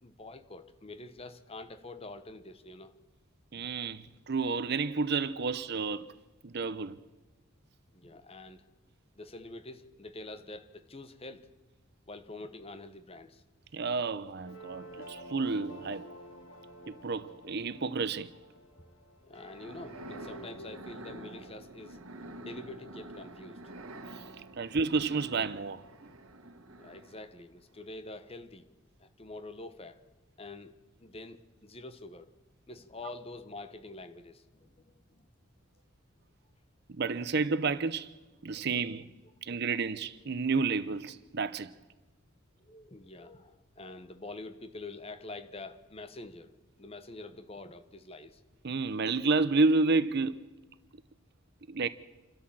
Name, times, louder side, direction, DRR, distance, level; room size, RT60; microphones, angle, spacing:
voice 1, 0.0-2.9 4.1-4.2 7.9-8.6 9.2-11.5 12.1-13.4 19.2-22.0 22.4-23.6 26.8-28.6 29.0-30.0 30.4-30.7 31.0-32.3 32.7-35.3 38.5-38.7 42.6-48.4, left 2 dB, 30° left, 1.1 m, -46 dB
voice 2, 3.5-6.1 6.4-7.0 13.7-16.1 16.9-18.3 24.1-24.2 24.6-25.8 36.9-38.1 38.4-39.1 39.4-41.7 48.6-50.5 51.7-51.9, right 4 dB, 50° right, 0.7 m, -30 dB
sound 1, 14.4-20.8, equal, 70° left, 2.4 m, -49 dB
sound 2, 19.4-27.4, right 1 dB, 80° right, 1.5 m, -47 dB
28.0 x 12.5 x 7.5 m
head